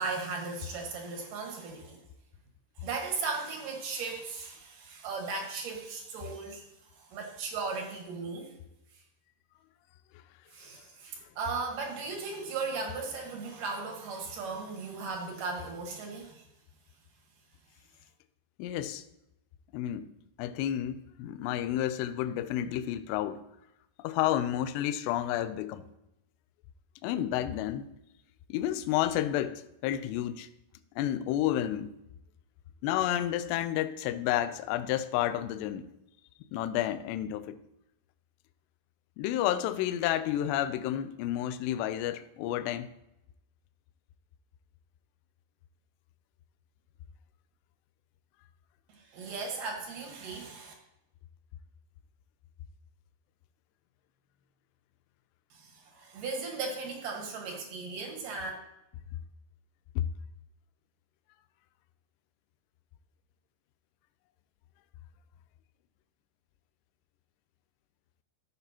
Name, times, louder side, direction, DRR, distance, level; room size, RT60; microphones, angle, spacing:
voice 1, 0.0-2.0 2.8-6.7 7.1-8.5 10.5-16.4 48.9-50.7 55.5-58.5, right 4 dB, 60° right, 2.6 m, -37 dB
voice 2, 18.6-19.0 19.7-20.1 20.4-23.4 24.0-25.9 27.0-27.9 28.5-30.5 31.0-31.9 32.8-35.8 36.5-37.6 39.2-42.9 60.0-60.1, left 12 dB, 85° left, 2.6 m, -30 dB
15.0 x 6.6 x 2.9 m
omnidirectional pair, 5.2 m